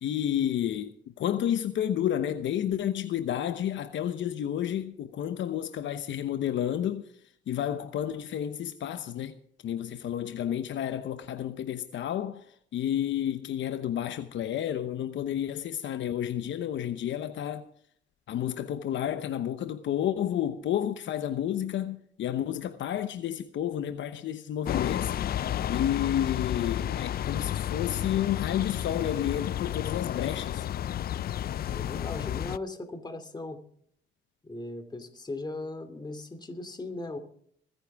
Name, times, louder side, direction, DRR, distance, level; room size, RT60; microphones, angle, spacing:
voice 1, 0.0-7.1 7.5-9.4 9.6-17.7 18.3-30.7, left 10 dB, 70° left, 0.9 m, -31 dB
sound 1, 24.7-32.6, left 11 dB, 50° left, 0.4 m, -31 dB
voice 2, 31.6-33.6 34.4-37.2, left 2 dB, 20° left, 2.5 m, -38 dB
23.5 x 9.9 x 3.5 m
cardioid pair, 90°, 20 cm